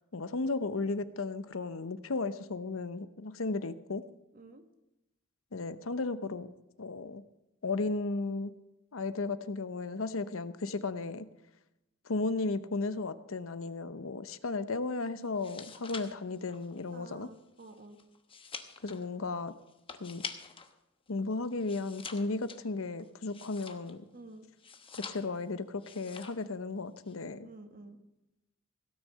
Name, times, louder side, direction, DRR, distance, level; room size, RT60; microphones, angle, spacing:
voice 1, 0.1-4.0 5.5-6.5 6.8-7.2 7.6-8.5 8.9-11.3 12.0-17.3 18.8-19.5 20.0-20.2 21.1-24.0 25.1-27.5, left 3 dB, 90° left, 13 dB, 0.8 m, -35 dB
voice 2, 4.3-4.6 16.9-18.0 24.1-24.5 27.4-28.0, right 2 dB, 45° right, 7 dB, 1.4 m, -51 dB
sound 1, 15.2-20.7 21.1-24.1 24.6-25.5 25.8-26.5 26.8-27.1, left 5 dB, 25° left, 1.0 m, -46 dB
17.0 x 6.4 x 7.6 m, 0.92 s
head